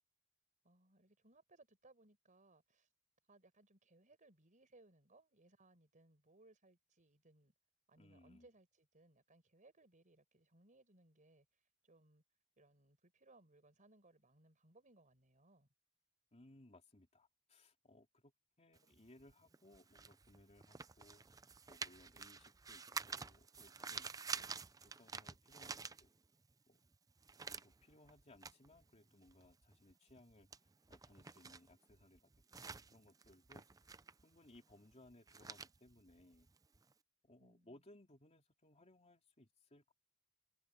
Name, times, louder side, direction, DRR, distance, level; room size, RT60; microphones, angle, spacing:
voice 1, 0.6-2.9 3.3-7.5 7.9-11.5 11.8-12.2 12.6-15.7 37.4-37.8, right 2 dB, 35° right, 4.9 m, -68 dB
voice 2, 8.0-8.5 16.3-18.3 18.6-21.2 21.7-26.1 26.7-26.8 27.4-30.5 30.9-32.3 32.6-36.5 37.2-39.9, left 1 dB, 30° left, 3.1 m, -65 dB
sound 1, 18.7-26.5 26.8-36.9, right 5 dB, 15° right, 0.5 m, -50 dB
head